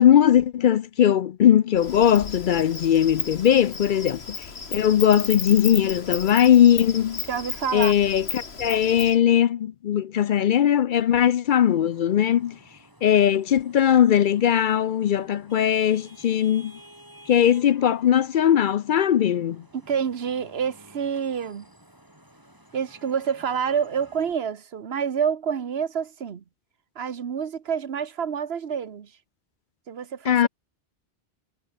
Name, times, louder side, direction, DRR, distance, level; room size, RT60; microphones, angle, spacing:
voice 1, 0.0-7.2 7.7-12.6 13.0-16.7 17.3-19.6 30.3-30.5, left 10 dB, 60° left, 0.6 m, -19 dB
Insect, 1.8-9.2, left 4 dB, 80° left, 2.2 m, -34 dB
voice 2, 7.3-7.9 19.7-21.7 22.7-26.4 27.0-29.1 29.9-30.5, right 7 dB, 80° right, 1.3 m, -28 dB
Vehicle horn car horn honking / Traffic noise roadway noise, 11.6-24.3, equal, 20° right, 6.2 m, -52 dB
omnidirectional pair, 1.1 m